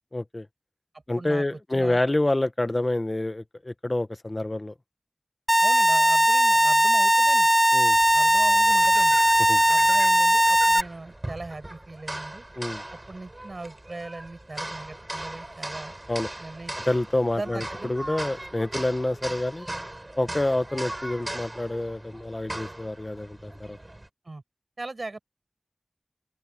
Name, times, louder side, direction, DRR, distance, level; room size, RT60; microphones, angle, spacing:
voice 1, 0.1-0.5 1.1-4.7 7.7-8.0 9.5-9.6 12.6-12.8 16.1-16.3 16.9-19.7 20.2-23.8, left 1 dB, 40° left, 1.2 m, -27 dB
sound 1, 5.5-10.8, equal, 10° right, 0.6 m, -19 dB
voice 2, 5.6-7.5 8.1-9.2 9.7-12.4 13.1-15.9 16.4-16.7 17.4-18.0 24.2-24.4 24.8-25.2, right 2 dB, 75° right, 7.1 m, -39 dB
sound 2, 7.9-24.1, right 1 dB, 35° right, 5.4 m, -39 dB
wide cardioid pair, 55°, 0 cm